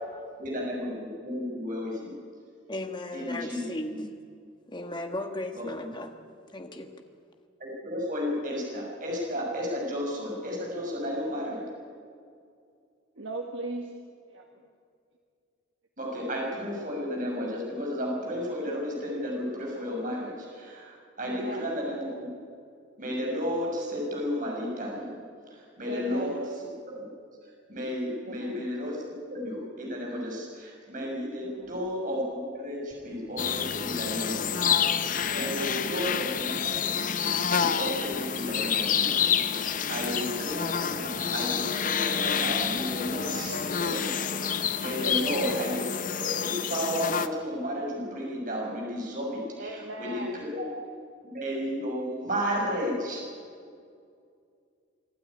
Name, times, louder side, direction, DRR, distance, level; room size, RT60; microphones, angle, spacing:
voice 1, 0.4-2.2 3.1-3.6 3.9-4.0 5.5-5.9 7.6-11.6 16.0-22.1 23.0-25.2 25.5-26.4 26.9-27.0 27.7-36.5 37.0-37.1 37.5-40.6 40.9-44.2 44.8-45.8 46.2-50.7 51.2-53.2, equal, 45° right, -2 dB, 6.4 m, -33 dB
voice 2, 2.7-4.1 4.7-6.2 6.5-6.9, left 1 dB, 25° left, 5 dB, 1.6 m, -36 dB
voice 3, 13.2-13.9 14.3-14.5 21.2-21.7 25.8-26.4 28.2-28.5 31.4-31.7 35.2-36.1 39.8-40.4 43.4-43.8 45.0-45.5 49.6-50.5, right 1 dB, 70° right, 3 dB, 1.6 m, -39 dB
Guitar, 31.6-31.9 32.9-45.6, right 1 dB, 15° right, 2.3 m, -48 dB
sound 1, 33.4-47.3, left 7 dB, 40° left, 0.7 m, -28 dB
25.5 x 12.5 x 9.7 m, 2.3 s
head